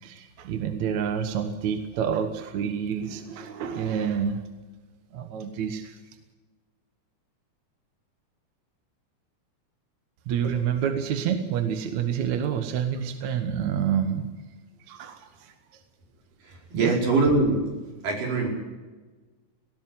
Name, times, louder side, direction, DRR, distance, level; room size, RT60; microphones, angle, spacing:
voice 1, 0.0-4.4 5.1-6.0 10.3-14.3 14.8-15.5 16.7-17.0, right 8 dB, 65° right, 7 dB, 2.5 m, -28 dB
voice 2, 16.4-17.6 18.0-18.5, right 3 dB, 85° right, 0 dB, 6.4 m, -23 dB
19.0 x 18.5 x 7.8 m, 1.3 s
omnidirectional pair, 3.7 m